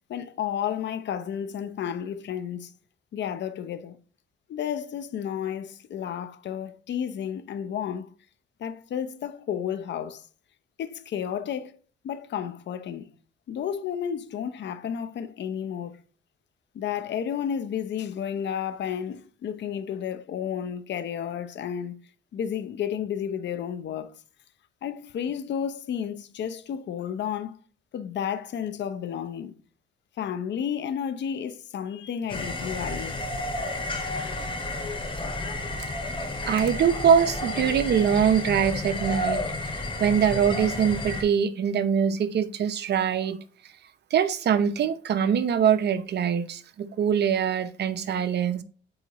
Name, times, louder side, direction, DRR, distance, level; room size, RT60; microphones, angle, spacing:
voice 1, 0.1-2.7 3.1-4.0 4.5-8.1 8.6-10.3 10.8-11.8 12.0-13.1 13.5-16.0 16.7-22.0 22.3-24.1 24.8-27.6 27.9-29.5 30.2-33.2, left 8 dB, 65° left, 0.7 m, -32 dB
sound 1, 32.3-41.2, left 2 dB, 25° left, 2.2 m, -31 dB
voice 2, 36.5-43.4 44.1-48.6, right 8 dB, 60° right, 0.7 m, -23 dB
8.8 x 4.1 x 3.0 m
cardioid pair, 90°, 20 cm